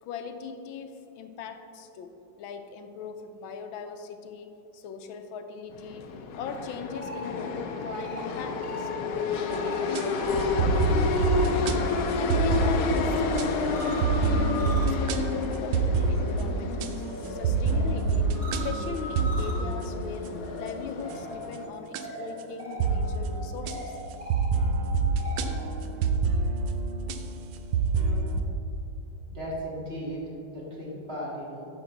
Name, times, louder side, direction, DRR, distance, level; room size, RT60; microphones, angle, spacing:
voice 1, 0.0-4.5 4.7-6.1 6.3-10.2 10.5-11.3 12.0-18.3 18.6-24.0, left 6 dB, 85° left, 7 dB, 1.4 m, -40 dB
sound 1, 5.7-21.6, left 4 dB, 65° left, 1.0 m, -31 dB
sound 2, 6.8-12.0 12.3-25.6, left 1 dB, 10° right, 1.3 m, -41 dB
sound 3, 9.5-10.0 10.4-16.9 17.2-20.7 21.1-21.5 21.9-22.0 22.8-23.3 23.7-23.8 24.3-28.4, right 4 dB, 75° right, 1.3 m, -27 dB
voice 2, 29.3-30.2 30.5-31.7, equal, 30° right, -5 dB, 2.2 m, -36 dB
10.5 x 6.6 x 3.8 m, 2.7 s
omnidirectional pair, 2.2 m